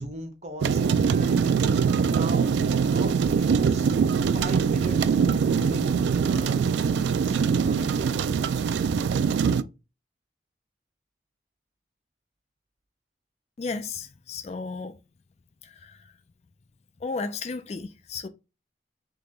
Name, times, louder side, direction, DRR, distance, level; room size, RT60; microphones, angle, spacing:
voice 1, 0.0-1.8 2.0-2.5 2.9-3.9 4.3-8.3, right 1 dB, 40° right, 0.9 m, -39 dB
sound 1, 0.6-9.6, right 6 dB, 80° right, 0.3 m, -23 dB
voice 2, 13.6-15.0 15.6-16.0 17.0-18.3, left 4 dB, 35° left, 0.3 m, -34 dB
3.7 x 2.8 x 3.9 m
head